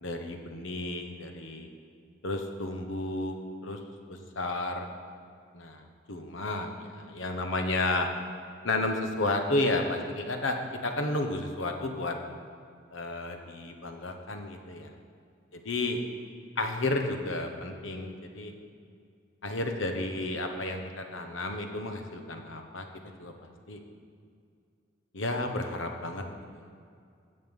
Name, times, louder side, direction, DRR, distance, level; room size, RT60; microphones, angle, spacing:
voice 1, 0.0-1.7 2.2-3.4 3.6-3.8 4.3-4.9 5.5-5.8 6.1-8.1 8.6-10.6 10.8-12.2 12.9-14.9 15.5-16.0 16.6-18.5 19.4-22.9 23.2-23.8 25.1-26.2 26.5-26.6, left 2 dB, 75° left, 5 dB, 1.1 m, -32 dB
16.0 x 5.5 x 5.5 m, 2.3 s
head